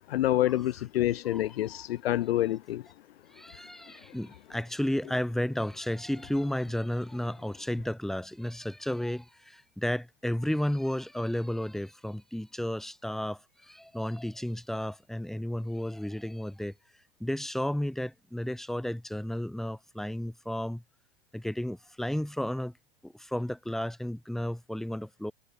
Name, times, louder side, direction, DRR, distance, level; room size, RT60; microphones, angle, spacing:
voice 1, 0.1-2.8, left 14 dB, 70° left, 0.9 m, -27 dB
voice 2, 3.3-16.7 17.2-20.8 21.3-22.7 23.0-25.3, left 1 dB, ahead, 4.1 m, -33 dB
supercardioid pair, 160°, 32 cm